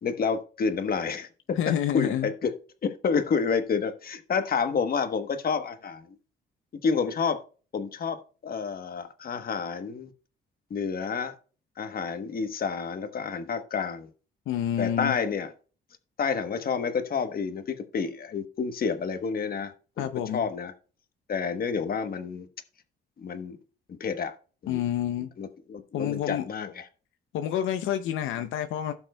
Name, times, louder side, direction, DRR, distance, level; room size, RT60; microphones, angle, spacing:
voice 1, 0.0-2.5 2.8-6.0 6.8-7.4 7.7-10.1 10.7-11.3 11.8-14.1 14.8-15.5 16.2-20.7 21.3-22.5 23.2-23.6 23.9-24.3 24.6-24.8 25.4-26.8, left 5 dB, 50° left, 1.2 m, -29 dB
voice 2, 1.6-2.3 14.5-15.2 20.0-20.4 24.7-25.3 25.9-26.4 27.3-28.9, left 10 dB, 85° left, 0.7 m, -28 dB
16.0 x 6.0 x 2.3 m
cardioid pair, 90°, 20 cm